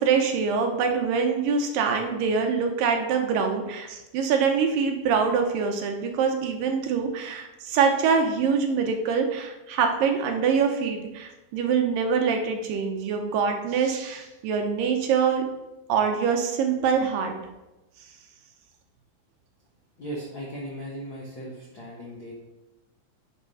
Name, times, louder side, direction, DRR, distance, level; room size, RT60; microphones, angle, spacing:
voice 1, 0.0-15.4 15.9-17.3, right 6 dB, 75° right, 4 dB, 2.5 m, -24 dB
voice 2, 20.0-22.3, equal, 60° left, -5 dB, 1.2 m, -37 dB
8.4 x 4.2 x 5.6 m, 1.0 s
omnidirectional pair, 4.2 m